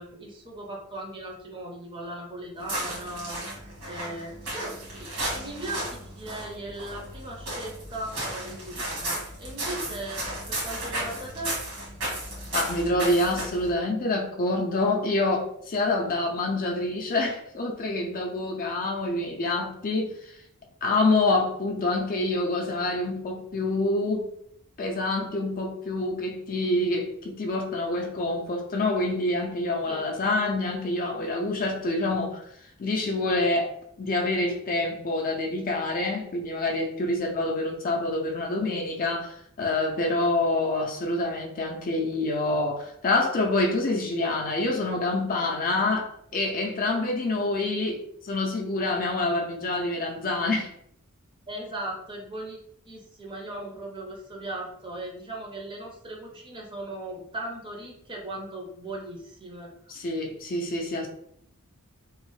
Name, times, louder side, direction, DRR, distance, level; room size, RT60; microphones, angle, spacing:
voice 1, 0.0-11.6 29.9-30.0 51.5-52.6 52.9-59.7, right 1 dB, 20° right, -1 dB, 0.6 m, -38 dB
sound 1, 2.6-13.7, right 1 dB, 75° right, 1.4 m, -34 dB
voice 2, 12.5-20.1 20.8-24.3 24.8-32.4 32.8-33.7 34.0-48.0 48.2-50.7 59.9-61.1, left 2 dB, 40° left, 1 dB, 0.4 m, -26 dB
3.1 x 2.0 x 3.0 m, 0.72 s
head